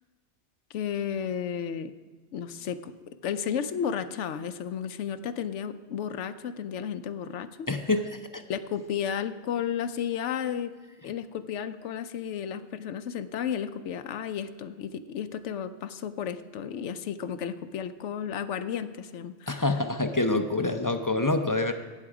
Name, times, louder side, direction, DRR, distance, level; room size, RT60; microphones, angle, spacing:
voice 1, 0.7-1.9 2.3-7.7 8.5-10.7 11.0-19.7, left 8 dB, 85° left, 10 dB, 1.0 m, -33 dB
voice 2, 7.7-8.4 19.5-21.7, left 2 dB, 25° left, 7 dB, 0.4 m, -26 dB
17.5 x 7.4 x 4.9 m, 1.3 s
omnidirectional pair, 1.2 m